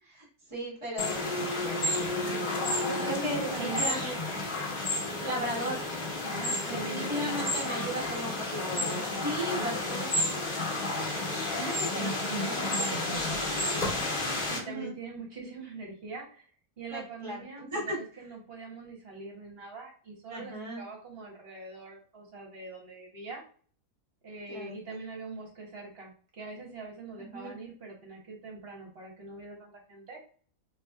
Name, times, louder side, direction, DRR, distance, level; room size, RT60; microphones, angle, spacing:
voice 1, 0.0-1.2 2.3-4.2 5.1-5.8 6.6-10.3 12.2-12.3 14.6-14.9 16.9-18.0 20.3-20.8 24.5-25.0 27.2-27.6, equal, 20° right, -5 dB, 1.3 m, -36 dB
sound 1, 1.0-14.6, left 2 dB, 30° left, 1.2 m, -31 dB
voice 2, 2.8-4.0 6.2-7.9 9.5-10.0 11.3-13.7 14.5-16.5 16.8-23.4 24.2-30.2, right 3 dB, 45° right, 0 dB, 1.1 m, -42 dB
4.0 x 2.8 x 2.3 m, 0.42 s
omnidirectional pair, 1.7 m